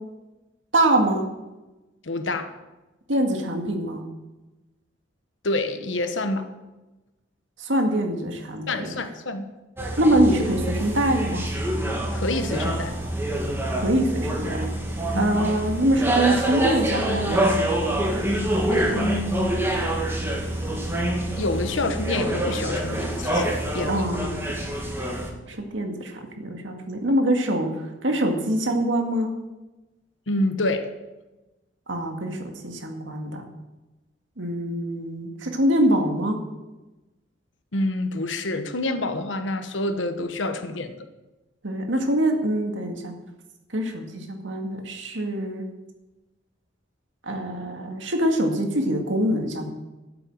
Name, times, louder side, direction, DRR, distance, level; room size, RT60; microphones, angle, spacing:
voice 1, 0.7-1.2 3.1-4.0 7.6-8.7 10.0-11.4 13.7-14.7 15.1-17.6 23.8-24.5 25.5-27.7 28.0-29.3 31.9-33.4 34.4-36.4 41.6-43.1 43.7-45.7 47.2-49.7, right 1 dB, 80° right, 3 dB, 2.0 m, -24 dB
voice 2, 2.0-2.5 5.4-6.5 8.7-9.5 12.1-13.0 15.1-15.4 18.7-19.6 21.4-24.1 30.3-30.9 37.7-41.0, left 2 dB, 80° left, 8 dB, 1.1 m, -27 dB
sound 1, 9.8-25.3, right 1 dB, 15° right, 2.2 m, -26 dB
13.5 x 7.6 x 7.7 m, 1.1 s
head